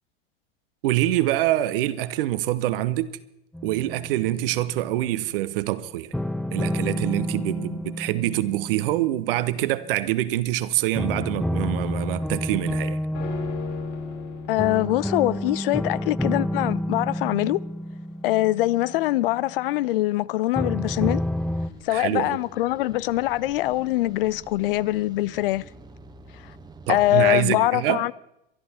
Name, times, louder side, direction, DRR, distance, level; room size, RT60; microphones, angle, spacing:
voice 1, 0.8-3.2 3.6-6.1 6.5-13.0 21.9-22.4 26.9-28.0, right 15 dB, 65° right, 1.0 m, -25 dB
sound 1, 3.5-4.7 6.1-10.1 10.9-19.8 20.5-21.7, left 1 dB, ahead, 0.5 m, -30 dB
sound 2, 13.1-22.5 22.8-22.9, left 6 dB, 50° left, 5.1 m, -42 dB
voice 2, 14.5-17.6 18.2-21.2 21.8-25.6 26.9-28.1, left 16 dB, 70° left, 0.5 m, -23 dB
sound 3, 21.0-27.4, right 4 dB, 15° right, 1.2 m, -47 dB
23.0 x 11.5 x 4.3 m
hypercardioid pair, 85°, 29 cm